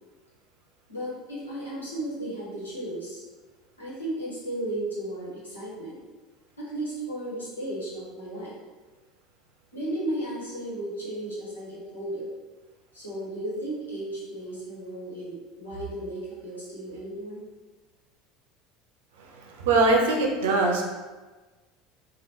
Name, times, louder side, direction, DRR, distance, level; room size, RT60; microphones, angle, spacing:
voice 1, 0.9-3.2 3.8-6.0 6.6-8.6 9.7-12.3 12.9-17.5, right 1 dB, 85° left, -9 dB, 1.2 m, -34 dB
voice 2, 19.6-20.8, right 2 dB, 65° right, 0 dB, 0.5 m, -21 dB
3.1 x 2.5 x 2.9 m, 1.3 s
figure-of-eight pair, 70°, 0 cm